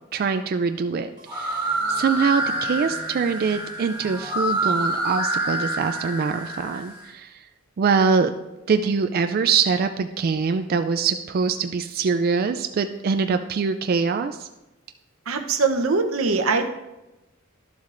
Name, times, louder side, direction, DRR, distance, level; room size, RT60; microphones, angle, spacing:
voice 1, 0.1-7.5 7.8-8.3 8.7-14.5, right 5 dB, 45° right, 8 dB, 0.3 m, -23 dB
sound 1, 1.2-7.0, right 1 dB, 20° right, 1.5 m, -27 dB
voice 2, 15.3-16.7, right 4 dB, 85° right, 7 dB, 0.8 m, -22 dB
12.0 x 7.2 x 2.5 m, 0.99 s
head